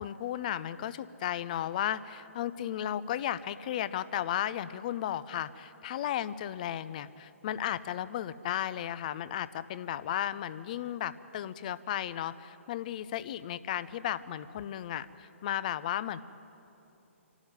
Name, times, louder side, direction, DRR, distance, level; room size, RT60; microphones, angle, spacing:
voice 1, 0.0-16.2, left 11 dB, 35° left, 16 dB, 0.6 m, -34 dB
26.0 x 12.0 x 9.5 m, 2.9 s
figure-of-eight pair, 130°, 7 cm